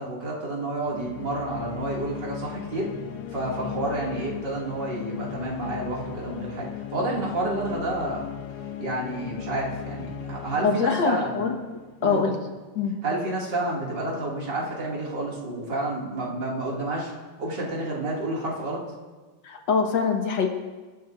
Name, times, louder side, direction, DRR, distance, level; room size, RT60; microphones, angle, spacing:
voice 1, 0.0-2.9 3.3-8.3 8.8-11.4 12.0-12.3 13.0-17.1 17.4-18.8, right 2 dB, 55° right, -4 dB, 3.0 m, -30 dB
sound 1, 0.8-12.4, left 8 dB, 90° left, 1.8 m, -37 dB
voice 2, 10.6-12.4 12.8-12.9 19.4-20.5, left 5 dB, 60° left, 2 dB, 1.9 m, -24 dB
26.0 x 10.5 x 2.6 m, 1.3 s
omnidirectional pair, 2.4 m